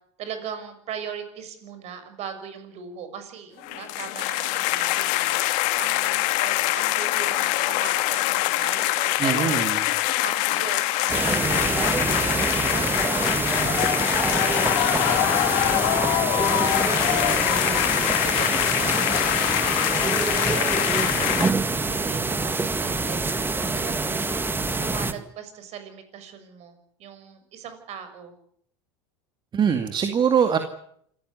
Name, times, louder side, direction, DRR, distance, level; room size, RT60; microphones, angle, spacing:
voice 1, 0.2-5.4 5.8-9.7 10.2-16.1 16.6-17.9 18.2-20.0 20.5-20.7 21.2-24.4 24.7-28.3, right 7 dB, 50° right, 9 dB, 6.3 m, -39 dB
sound 1, 3.6-21.5, left 17 dB, 60° left, 1.9 m, -24 dB
voice 2, 9.2-9.8 29.5-30.6, right 7 dB, 30° right, 7 dB, 2.3 m, -22 dB
sound 2, 11.1-25.1, right 3 dB, 15° right, 2.0 m, -26 dB
27.0 x 15.0 x 9.6 m, 0.69 s
hypercardioid pair, 85°, 15 cm